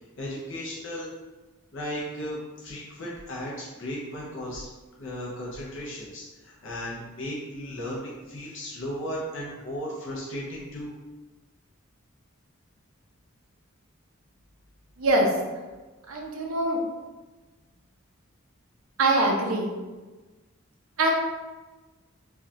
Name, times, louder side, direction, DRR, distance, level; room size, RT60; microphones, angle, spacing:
voice 1, 0.2-1.1 1.7-4.6 5.0-10.9, equal, 60° left, -4 dB, 0.7 m, -35 dB
voice 2, 15.0-15.3 16.1-16.8 19.0-19.7 21.0-21.1, right 2 dB, 70° right, 0 dB, 0.7 m, -23 dB
4.5 x 2.3 x 2.8 m, 1.2 s
head